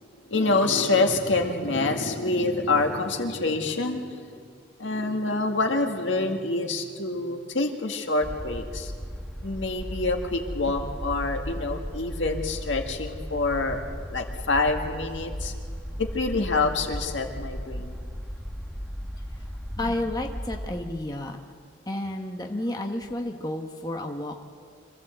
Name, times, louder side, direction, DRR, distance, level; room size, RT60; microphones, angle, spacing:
voice 1, 0.3-4.2 4.8-8.9 9.4-13.8 14.1-15.5 16.0-18.0, left 3 dB, 85° left, 3 dB, 1.8 m, -26 dB
sound 1, 8.2-20.8, equal, ahead, 1.3 m, -36 dB
voice 2, 19.8-21.4 21.9-24.5, left 1 dB, 20° left, 3 dB, 1.1 m, -31 dB
25.5 x 14.5 x 7.9 m, 2.2 s
head